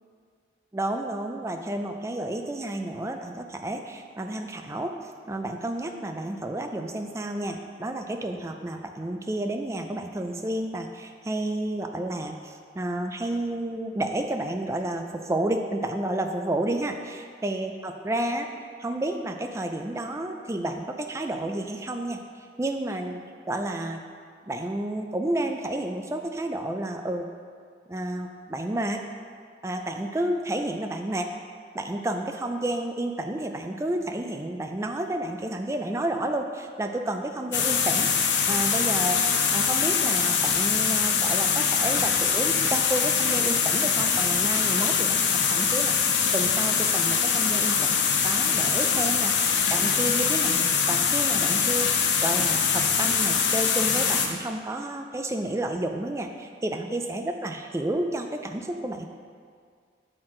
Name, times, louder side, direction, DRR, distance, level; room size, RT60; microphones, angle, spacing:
voice 1, 0.7-18.5 18.8-24.0 24.5-27.3 27.9-29.0 29.6-31.3 31.7-38.1 38.5-45.2 45.5-59.1, right 1 dB, 15° right, 5 dB, 0.3 m, -31 dB
sound 1, 37.5-54.3, left 6 dB, 85° left, 0.6 m, -23 dB
7.7 x 4.3 x 3.7 m, 2.1 s
head